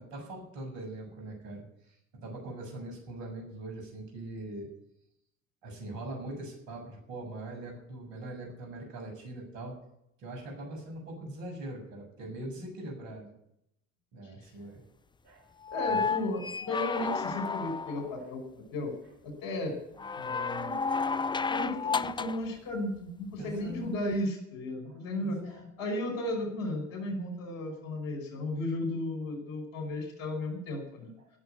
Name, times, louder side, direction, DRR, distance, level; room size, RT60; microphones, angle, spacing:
voice 1, 0.0-4.7 5.6-9.8 10.2-13.3 14.1-14.8 15.2-15.5 15.9-16.0 23.4-23.9 24.9-25.6 31.2-31.3, right 1 dB, 75° right, 2 dB, 7.1 m, -42 dB
sound 1, 15.6-18.2 20.0-22.5 24.1-24.2, left 5 dB, 10° left, 0.5 m, -32 dB
voice 2, 15.7-16.4 16.7-18.4 18.7-18.9 19.2-19.7 20.2-20.8 21.5-31.1, left 1 dB, 75° left, 5 dB, 5.3 m, -34 dB
17.0 x 7.6 x 9.5 m, 0.78 s
hypercardioid pair, 70°, 39 cm